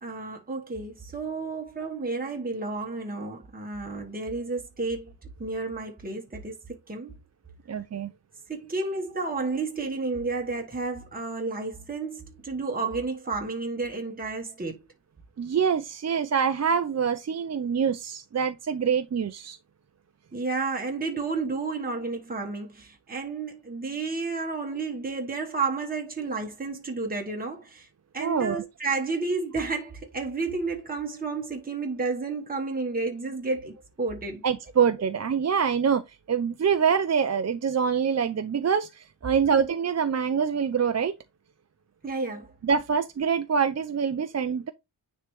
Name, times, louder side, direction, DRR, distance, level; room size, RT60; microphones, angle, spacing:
voice 1, 0.0-5.1 5.4-7.2 8.5-14.8 20.3-27.9 28.1-34.4 42.0-42.5, right 3 dB, 20° right, 1.2 m, -31 dB
voice 2, 7.7-8.1 15.4-19.6 28.2-28.6 34.4-36.0 36.3-41.1 42.6-44.7, right 7 dB, 40° right, 0.4 m, -25 dB
9.7 x 3.3 x 3.1 m
wide cardioid pair, 115°, 43 cm